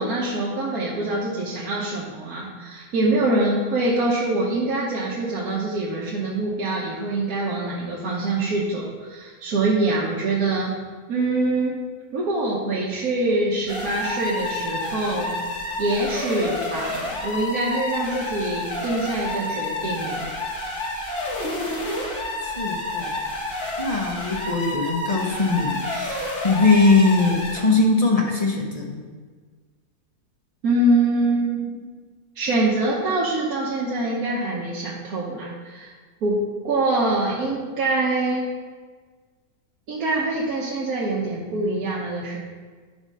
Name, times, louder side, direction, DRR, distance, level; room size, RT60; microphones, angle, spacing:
voice 1, 0.0-10.8 11.1-11.8 12.1-15.3 15.8-20.2 30.6-31.9 32.3-35.9 36.2-38.4 39.9-42.4, right 2 dB, 75° right, -4 dB, 1.5 m, -24 dB
sound 1, 13.7-27.7, left 1 dB, 55° left, 1.8 m, -29 dB
voice 2, 22.4-23.2 23.8-29.0, left 3 dB, 30° left, -1 dB, 1.0 m, -21 dB
10.5 x 3.6 x 5.5 m, 1.5 s
omnidirectional pair, 1.6 m